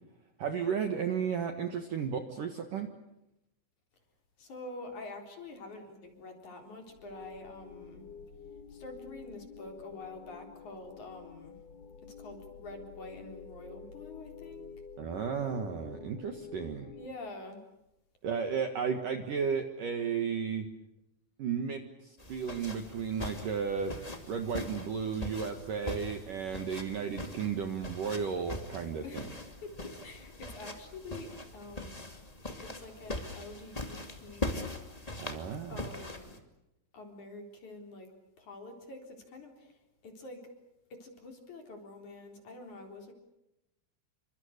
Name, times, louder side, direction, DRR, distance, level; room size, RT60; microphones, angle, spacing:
voice 1, 0.4-2.9 15.0-16.9 18.2-20.7 21.4-23.9 24.3-29.3 35.2-35.8, right 6 dB, 60° right, 6 dB, 2.5 m, -34 dB
voice 2, 4.4-8.0 8.7-11.6 12.0-14.7 16.9-17.6 29.0-32.0 32.6-34.7 35.7-36.4 36.9-38.1 38.4-40.4 40.9-43.1, left 2 dB, 40° left, 3 dB, 4.8 m, -47 dB
sound 1, 6.9-17.1, left 6 dB, 55° left, 2.5 m, -49 dB
sound 2, 22.2-36.4, left 1 dB, 20° left, 1.0 m, -41 dB
28.5 x 25.5 x 6.6 m, 0.90 s
omnidirectional pair, 5.5 m